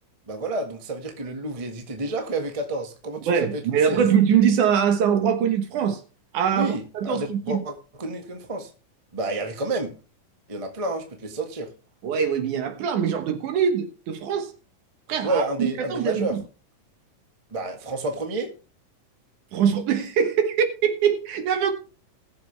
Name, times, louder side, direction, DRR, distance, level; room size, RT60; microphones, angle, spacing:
voice 1, 0.3-4.1 6.5-8.7 9.1-9.9 10.5-11.7 15.2-16.4 17.5-18.5, right 2 dB, 25° right, 0.7 m, -30 dB
voice 2, 3.3-6.0 6.3-7.6 12.0-14.5 15.1-16.4 19.5-21.7, right 7 dB, 70° right, 2.6 m, -23 dB
20.0 x 7.1 x 3.3 m
omnidirectional pair, 3.8 m